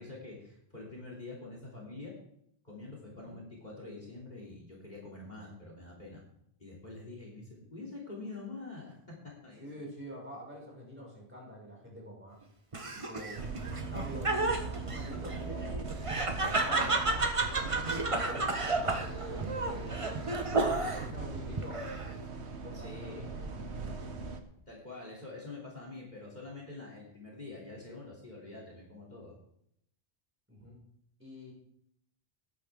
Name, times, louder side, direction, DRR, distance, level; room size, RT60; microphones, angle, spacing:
voice 1, 0.0-2.1 2.6-6.2 6.6-9.8 22.7-23.4 24.7-29.4, left 3 dB, 40° left, -2 dB, 3.1 m, -46 dB
voice 2, 9.6-12.4 12.9-13.4 13.8-15.9 16.5-20.5 21.0-21.8 22.6-24.0 30.5-30.8 31.2-31.5, equal, 10° right, -4 dB, 5.6 m, -46 dB
Laughter, 12.7-21.1 21.6-22.2, right 3 dB, 30° right, 1.1 m, -32 dB
sound 1, 13.4-24.4, right 4 dB, 75° right, 1.5 m, -40 dB
18.5 x 9.5 x 3.6 m, 0.73 s
omnidirectional pair, 1.1 m